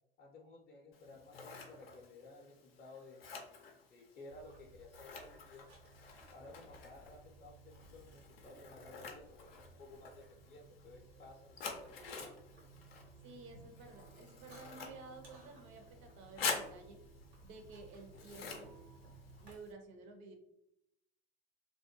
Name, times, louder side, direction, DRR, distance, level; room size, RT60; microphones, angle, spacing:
voice 1, 0.2-5.7 6.3-12.3, left 2 dB, 30° left, -3 dB, 0.5 m, -56 dB
Scissors, 0.9-19.7, left 5 dB, 80° left, 0.5 m, -48 dB
sound 1, 4.3-19.5, right 3 dB, 85° right, 1.0 m, -59 dB
voice 2, 13.2-17.0 17.4-18.8 19.4-20.4, right 3 dB, 45° right, 4 dB, 0.5 m, -53 dB
2.3 x 2.1 x 2.9 m, 0.80 s
figure-of-eight pair, 75°, 29 cm